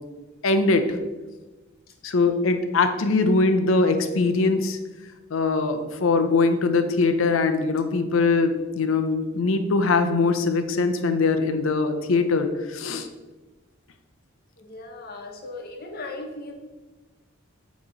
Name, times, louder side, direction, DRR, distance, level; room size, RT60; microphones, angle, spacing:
voice 1, 0.4-1.0 2.0-4.8 5.3-13.1, left 3 dB, 85° left, 8 dB, 0.6 m, -22 dB
voice 2, 14.6-16.5, left 2 dB, 50° left, 2 dB, 0.9 m, -37 dB
8.4 x 3.1 x 3.9 m, 1.2 s
head